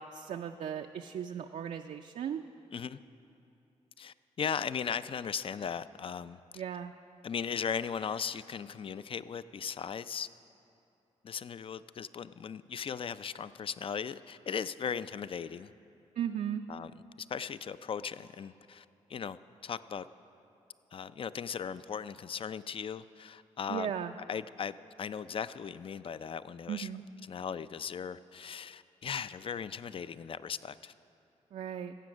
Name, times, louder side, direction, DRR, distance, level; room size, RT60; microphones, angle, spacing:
voice 1, 0.0-2.4 6.6-6.9 16.2-16.6 23.7-24.1 26.7-27.0 31.5-31.9, right 9 dB, 65° right, 5 dB, 0.4 m, -36 dB
voice 2, 4.0-6.6 7.2-10.3 11.2-15.7 16.7-16.9 17.2-20.1 20.9-23.9 24.3-26.9 27.2-30.9, left 7 dB, 45° left, 15 dB, 0.4 m, -38 dB
16.0 x 7.7 x 6.2 m, 2.7 s
cardioid pair, 60°, 13 cm